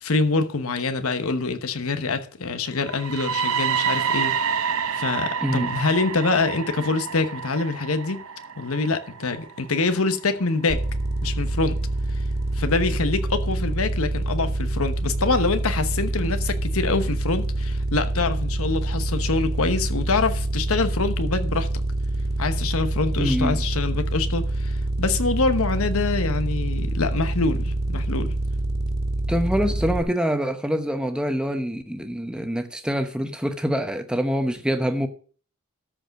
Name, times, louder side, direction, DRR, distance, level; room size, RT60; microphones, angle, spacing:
voice 1, 0.0-4.7 4.9-8.2 8.6-10.8 11.2-11.8 12.5-21.7 22.4-28.3, left 3 dB, 70° left, 1.1 m, -25 dB
sound 1, 2.8-10.7, right 7 dB, 70° right, 0.7 m, -28 dB
sound 2, 10.7-30.0, right 2 dB, 45° right, 1.8 m, -26 dB
voice 2, 23.2-23.6 29.3-35.1, equal, 5° right, 0.9 m, -25 dB
13.0 x 5.0 x 6.5 m
head